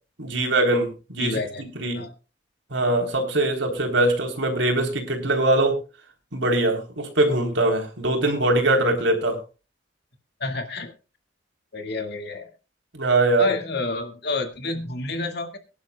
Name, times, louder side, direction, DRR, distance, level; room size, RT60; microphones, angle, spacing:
voice 1, 0.2-1.4 1.8-2.0 2.7-5.8 6.3-9.4 12.9-13.5, right 2 dB, 80° right, 3 dB, 3.6 m, -22 dB
voice 2, 1.2-1.7 1.9-2.1 10.4-10.9 11.7-12.5 13.4-15.6, left 3 dB, 60° left, 5 dB, 2.1 m, -29 dB
23.5 x 11.0 x 2.3 m, 0.32 s
head